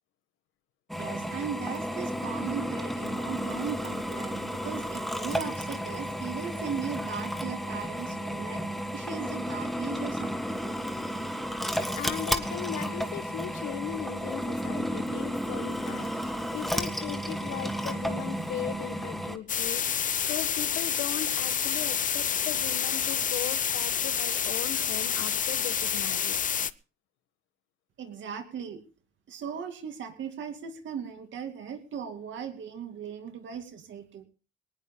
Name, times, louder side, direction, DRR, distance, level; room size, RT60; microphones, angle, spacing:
Drill, 0.9-19.4, equal, ahead, 1.7 m, -33 dB
voice 1, 1.0-8.6 8.9-10.7 28.0-28.8 29.3-34.2, right 6 dB, 70° right, 6 dB, 2.5 m, -38 dB
voice 2, 11.9-26.4, left 10 dB, 85° left, 12 dB, 1.3 m, -38 dB
sound 1, 19.5-26.7, left 8 dB, 40° left, 0.6 m, -28 dB
23.0 x 19.0 x 2.2 m, 0.34 s
cardioid pair, 90°, 20 cm